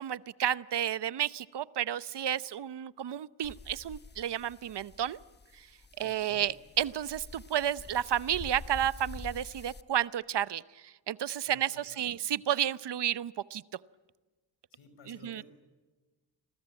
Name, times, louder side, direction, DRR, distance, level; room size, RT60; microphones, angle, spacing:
voice 1, 0.0-5.2 6.0-13.6 15.1-15.4, right 10 dB, 60° right, 17 dB, 0.8 m, -32 dB
sound 1, 3.4-9.8, left 3 dB, 20° left, 1.1 m, -48 dB
voice 2, 6.0-6.5 11.5-12.2 14.7-15.4, left 5 dB, 85° left, 9 dB, 5.6 m, -55 dB
29.5 x 22.5 x 9.0 m, 1.3 s
cardioid pair, 80°, 46 cm